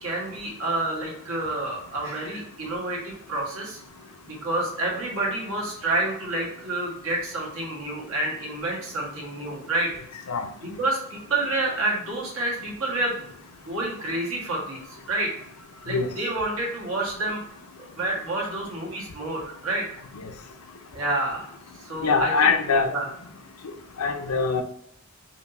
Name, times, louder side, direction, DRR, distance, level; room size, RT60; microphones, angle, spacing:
voice 1, 0.0-3.8 4.2-9.9 10.6-13.2 13.6-15.3 15.8-17.4 17.8-20.0 20.9-21.5 21.8-22.5 22.9-23.0, right 2 dB, 65° right, -3 dB, 1.5 m, -29 dB
voice 2, 22.0-22.9 24.0-24.6, left 4 dB, 80° left, 6 dB, 0.6 m, -22 dB
4.9 x 2.7 x 2.7 m, 0.70 s
head